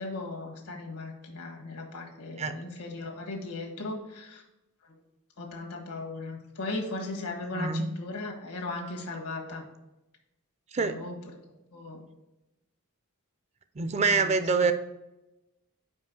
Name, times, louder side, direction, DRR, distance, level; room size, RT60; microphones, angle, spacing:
voice 1, 0.0-4.4 5.4-9.6 10.7-11.2 11.7-12.0 14.0-14.4, left 2 dB, 85° left, 2 dB, 1.5 m, -37 dB
voice 2, 7.5-7.9 10.7-11.0 13.8-14.7, right 4 dB, 30° right, 10 dB, 0.4 m, -25 dB
5.3 x 4.8 x 5.2 m, 0.95 s
head